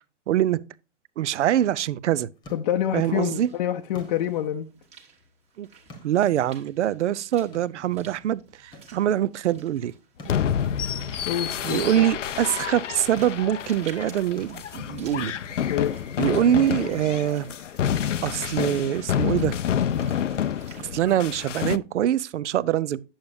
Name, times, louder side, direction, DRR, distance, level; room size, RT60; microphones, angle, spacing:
voice 1, 0.3-0.6 1.2-2.3 2.9-3.5 5.6-5.7 6.0-9.9 11.6-15.3 16.2-17.5 18.2-19.6 20.8-23.0, right 11 dB, 70° right, 0.5 m, -24 dB
sound 1, 2.0-17.1, equal, 10° left, 1.2 m, -52 dB
voice 2, 2.5-4.7 11.3-12.0 15.7-16.0, left 11 dB, 40° left, 0.6 m, -27 dB
Walk footsteps / Splash splatter, 3.0-20.8, right 5 dB, 15° right, 1.3 m, -52 dB
sound 2, 10.3-21.8, left 9 dB, 90° left, 0.6 m, -28 dB
8.7 x 7.1 x 2.6 m
hypercardioid pair, 140°, 36 cm